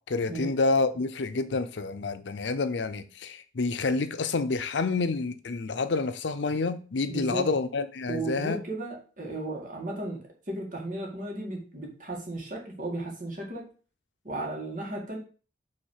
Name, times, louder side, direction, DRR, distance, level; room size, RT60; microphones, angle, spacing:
voice 1, 0.1-8.6, left 3 dB, 85° left, 0.6 m, -28 dB
voice 2, 7.1-7.5 8.1-13.7 14.2-15.2, right 2 dB, 45° right, 2.2 m, -35 dB
5.6 x 3.6 x 5.6 m
head